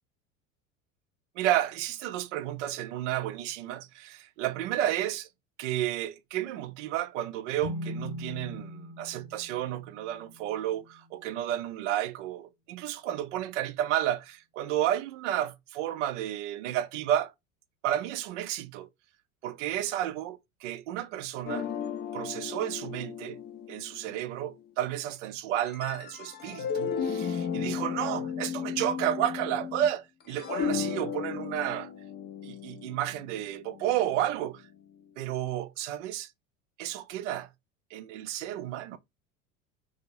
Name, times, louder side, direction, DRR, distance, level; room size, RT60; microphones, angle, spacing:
voice 1, 1.4-5.3 5.6-17.3 17.8-18.9 19.4-21.7 22.1-23.4 23.7-31.9 32.4-34.6 35.2-36.3 36.8-37.5 37.9-39.0, right 12 dB, 60° right, 0.5 m, -32 dB
sound 1, 7.6-11.2, left 1 dB, 55° left, 1.0 m, -41 dB
sound 2, 21.5-24.6 25.6-29.9 30.2-34.4, left 7 dB, 25° left, 0.5 m, -35 dB
2.5 x 2.0 x 2.9 m
figure-of-eight pair, 75°, 41 cm